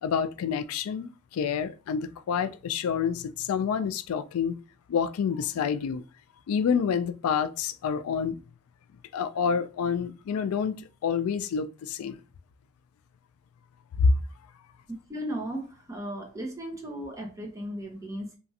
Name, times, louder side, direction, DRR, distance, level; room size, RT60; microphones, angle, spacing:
voice 1, 0.0-4.6 4.9-6.0 6.5-8.4 9.1-10.8 11.0-12.2 14.0-14.2, left 6 dB, 90° left, 0.3 m, -28 dB
voice 2, 15.1-18.4, equal, 15° right, 0.7 m, -36 dB
3.0 x 2.4 x 2.7 m
head